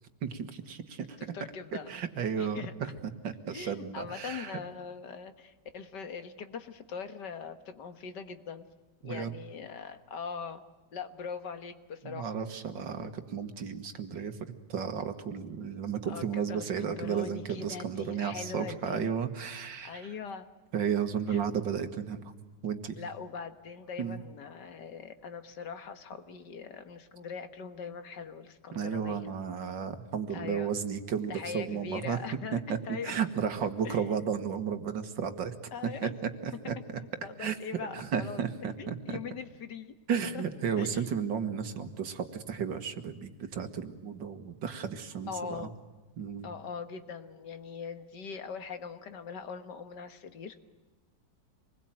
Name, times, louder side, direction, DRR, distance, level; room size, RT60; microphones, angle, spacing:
voice 1, 0.2-1.2 1.9-4.6 9.0-9.3 12.0-20.1 20.7-22.3 22.6-23.0 24.0-24.2 28.7-32.2 32.5-35.5 36.0-36.1 36.4-37.0 37.4-37.6 37.9-39.2 40.1-45.7 46.2-46.5, right 7 dB, 85° right, 8 dB, 2.3 m, -33 dB
voice 2, 1.3-1.9 2.4-2.7 3.5-8.7 9.0-10.6 10.9-12.4 16.1-19.1 19.8-20.5 21.3-21.4 23.0-29.3 30.3-30.7 31.3-32.6 32.9-33.1 33.9-34.4 35.7-36.1 36.6-38.4 38.8-39.9 40.3-40.4 40.8-41.3 45.3-45.8 46.4-50.7, left 6 dB, 70° left, 9 dB, 2.0 m, -41 dB
26.5 x 21.0 x 9.0 m, 1.3 s
omnidirectional pair, 1.9 m